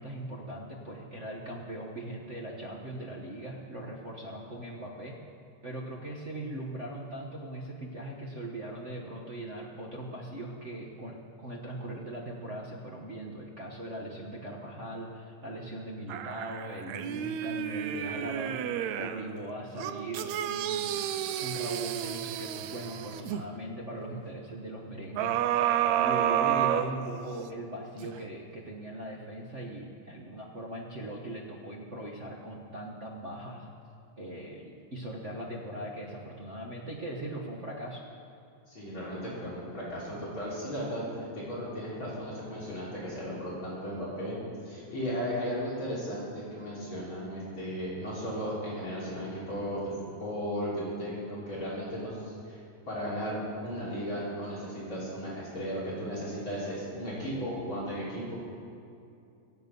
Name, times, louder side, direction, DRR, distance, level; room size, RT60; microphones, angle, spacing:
voice 1, 0.0-5.2 5.6-18.6 19.0-21.1 21.4-25.4 26.0-33.7 34.2-38.0, right 1 dB, 55° right, -2 dB, 0.7 m, -40 dB
sound 1, 16.1-19.3 19.8-23.4 25.2-27.5 28.0-28.1, right 10 dB, 80° right, 1.9 m, -30 dB
voice 2, 38.7-41.0 41.3-44.4 44.7-52.6 52.9-58.2, equal, 40° left, -8 dB, 4.3 m, -35 dB
24.0 x 8.4 x 5.4 m, 2.5 s
omnidirectional pair, 3.4 m